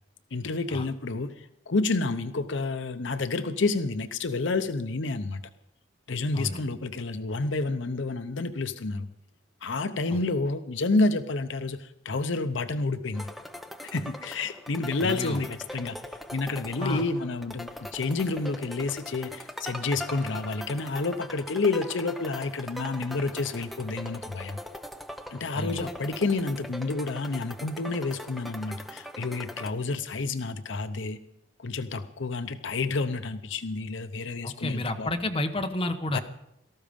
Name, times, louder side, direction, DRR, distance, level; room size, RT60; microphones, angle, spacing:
voice 1, 0.3-5.4 6.1-9.1 9.6-13.3 13.8-16.0 16.3-24.6 25.3-31.2 31.6-35.1 36.1-36.2, left 3 dB, 65° left, 10 dB, 0.7 m, -29 dB
sound 1, 13.1-29.7, left 1 dB, ahead, 0.7 m, -41 dB
voice 2, 15.0-15.4 16.8-17.1 25.5-25.9 34.4-36.2, left 1 dB, 25° left, 4 dB, 1.1 m, -30 dB
18.0 x 14.0 x 5.2 m, 0.81 s
head